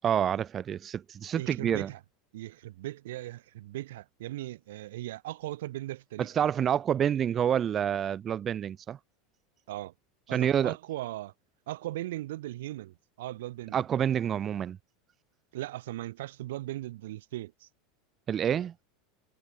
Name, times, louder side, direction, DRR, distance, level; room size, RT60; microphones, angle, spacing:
voice 1, 0.0-1.9 6.2-9.0 10.3-10.7 13.7-14.8 18.3-18.7, right 9 dB, 35° right, 1.1 m, -28 dB
voice 2, 1.4-2.0 2.3-6.5 9.7-9.9 10.3-11.3 11.7-13.8 15.5-17.7, right 15 dB, 75° right, 1.7 m, -38 dB
hypercardioid pair, 100°, 0 cm